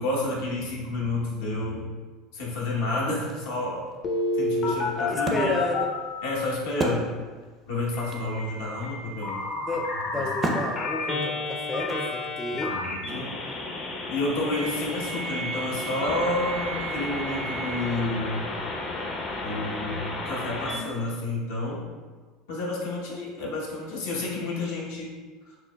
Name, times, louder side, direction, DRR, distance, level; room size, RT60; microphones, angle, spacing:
voice 1, 0.0-1.9 2.3-3.8 4.3-5.5 6.2-7.0 7.7-9.4 10.1-10.6 12.7-13.3 14.1-18.5 19.4-21.8 22.5-25.1, left 2 dB, 75° left, -4 dB, 1.0 m, -30 dB
Wood, 3.1-7.6 7.8-7.9 8.1-12.5, right 1 dB, 30° right, 0.6 m, -35 dB
Telephone, 4.0-6.5 7.9-20.8, left 2 dB, 45° left, 0.7 m, -31 dB
voice 2, 5.0-5.9 9.6-12.8, left 2 dB, 20° left, 2 dB, 0.3 m, -32 dB
Wind instrument woodwind instrument, 14.5-18.1, right 5 dB, 75° right, 0.7 m, -37 dB
6.1 x 2.1 x 2.2 m, 1.4 s
hypercardioid pair, 85°, 0 cm